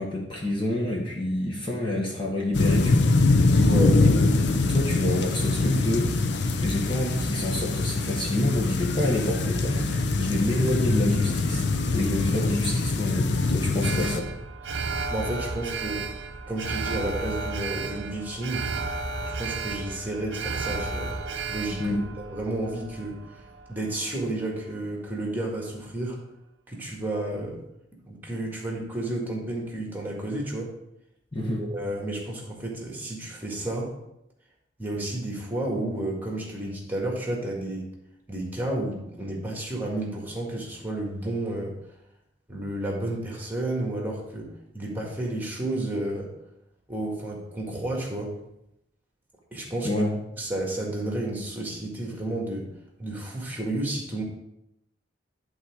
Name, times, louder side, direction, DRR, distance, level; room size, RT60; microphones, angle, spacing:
voice 1, 0.0-3.1 4.2-4.3 4.7-6.1 6.6-11.6 11.9-14.3 21.8-22.0 31.3-31.6 49.8-50.1, left 1 dB, 25° left, -2 dB, 1.2 m, -28 dB
sound 1, 2.5-14.2, left 3 dB, 65° left, 0.6 m, -23 dB
voice 2, 3.6-4.0 14.7-14.8 15.1-16.1 16.5-18.7 19.2-21.1 21.5-26.2 26.7-27.6 28.1-30.7 31.4-33.9 34.8-37.8 38.3-41.7 42.5-46.3 46.9-48.4 49.5-49.9 50.4-52.7 53.0-54.2, right 1 dB, 10° right, -2 dB, 1.7 m, -31 dB
Alarm, 13.8-24.1 24.4-24.5, right 4 dB, 70° right, 0.6 m, -33 dB
11.0 x 4.0 x 4.8 m, 0.84 s
head